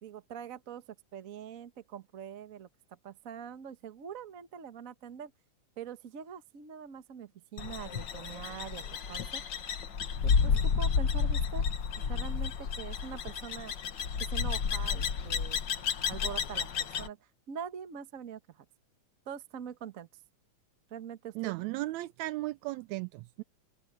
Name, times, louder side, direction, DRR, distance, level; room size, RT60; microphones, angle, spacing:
voice 1, 0.0-2.7 3.0-5.3 5.8-8.8 9.1-9.4 10.2-11.6 12.1-13.7 14.2-15.6 16.1-17.2 17.5-18.6 19.3-20.1 20.9-21.5, right 8 dB, 60° right, 0.8 m, -43 dB
sound 1, 7.6-17.1, left 6 dB, 50° left, 1.4 m, -31 dB
voice 2, 21.4-23.4, right 18 dB, 80° right, 1.7 m, -36 dB
open air
omnidirectional pair, 3.5 m